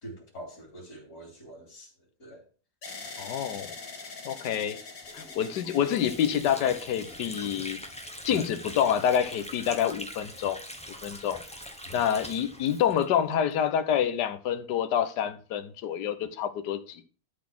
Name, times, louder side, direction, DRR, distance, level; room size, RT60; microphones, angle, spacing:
voice 1, 0.0-2.4 4.5-4.6 11.8-12.1, right 1 dB, 55° left, 3.8 m, -46 dB
sound 1, 2.8-10.8 11.5-12.2, left 4 dB, 85° left, 3.0 m, -46 dB
voice 2, 3.2-3.7 4.2-4.8 5.1-7.8 8.2-10.6 11.0-11.4 11.9-17.0, left 9 dB, 70° left, 1.5 m, -27 dB
Water / Sink (filling or washing), 5.0-13.6, equal, 5° left, 0.8 m, -43 dB
12.0 x 4.2 x 6.1 m
omnidirectional pair, 1.9 m